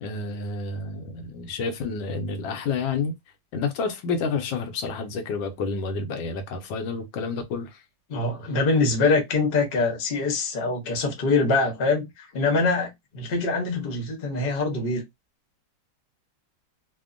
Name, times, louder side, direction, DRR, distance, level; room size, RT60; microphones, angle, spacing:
voice 1, 0.0-3.1 3.5-7.8, left 4 dB, 80° left, 1.4 m, -29 dB
voice 2, 8.1-15.0, left 3 dB, 40° left, 0.8 m, -24 dB
3.3 x 2.1 x 2.4 m
omnidirectional pair, 2.1 m